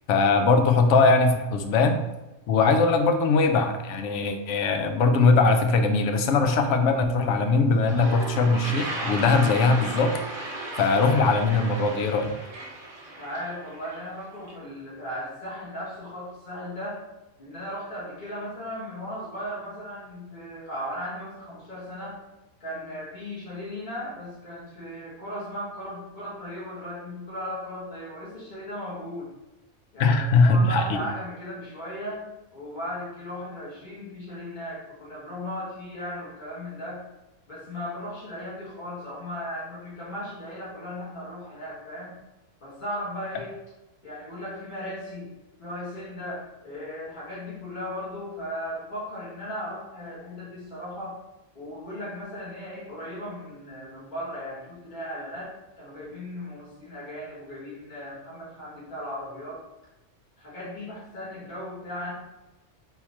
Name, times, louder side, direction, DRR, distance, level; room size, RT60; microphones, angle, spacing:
voice 1, 0.1-2.0 2.5-10.1 10.8-12.3 30.0-31.0, left 3 dB, 75° left, 6 dB, 0.9 m, -21 dB
Toilet flush, 7.4-7.5 7.7-14.5, right 2 dB, 35° right, 1.0 m, -36 dB
voice 2, 13.1-17.0 17.4-22.2 22.6-29.3 29.9-32.2 32.5-37.0 37.5-42.1 42.6-43.5 44.0-45.3 45.6-51.2 51.5-59.6 60.4-62.1, left 1 dB, 40° left, -8 dB, 1.5 m, -36 dB
3.8 x 3.0 x 4.1 m, 1.0 s
omnidirectional pair, 1.3 m